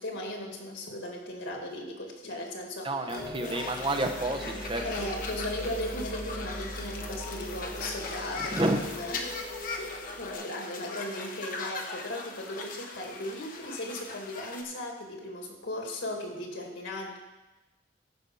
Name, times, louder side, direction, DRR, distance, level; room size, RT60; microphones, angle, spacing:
voice 1, 0.0-2.9 4.8-9.4 9.8-17.2, left 1 dB, 90° left, 1 dB, 2.2 m, -37 dB
voice 2, 2.8-5.1 8.5-8.8, right 2 dB, 25° right, 5 dB, 0.8 m, -30 dB
sound 1, 3.1-10.4, left 1 dB, 70° left, 3.5 m, -40 dB
sound 2, 3.4-14.6, left 3 dB, 50° left, 1.0 m, -40 dB
13.5 x 5.1 x 5.5 m, 1.1 s
head